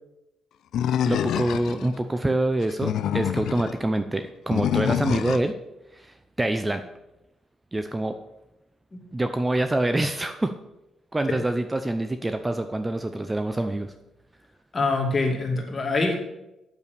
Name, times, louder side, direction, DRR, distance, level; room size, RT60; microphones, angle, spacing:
Animal, 0.7-1.9 2.6-3.7 4.5-5.5, left 10 dB, 75° left, 0.4 m, -26 dB
voice 1, 1.0-5.5 5.9-6.8 7.7-8.1 9.1-10.5 11.1-13.9, right 1 dB, 15° right, 8 dB, 0.6 m, -26 dB
voice 2, 14.7-16.2, left 3 dB, 30° left, 1 dB, 2.6 m, -24 dB
8.3 x 7.1 x 6.8 m, 0.93 s
cardioid pair, 95°, 0 cm